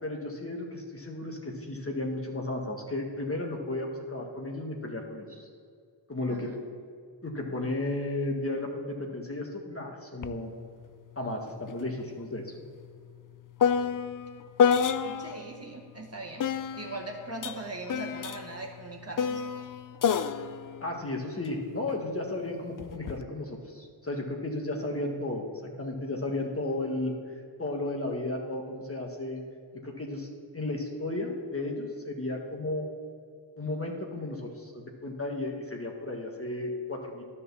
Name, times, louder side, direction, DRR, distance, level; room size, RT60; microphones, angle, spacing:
voice 1, 0.0-5.5 6.1-6.5 7.2-10.5 11.1-12.5 20.8-29.4 29.8-30.3 30.5-32.9 33.6-37.2, left 2 dB, 30° left, 0 dB, 1.6 m, -34 dB
voice 2, 6.3-6.6 15.0-19.4, right 2 dB, 30° right, 1 dB, 1.5 m, -40 dB
sound 1, 10.2-10.4 10.7-15.5 16.4-21.9 22.8-23.2, left 7 dB, 45° left, 0.5 m, -30 dB
10.5 x 4.3 x 7.0 m, 2.2 s
cardioid pair, 40°, 47 cm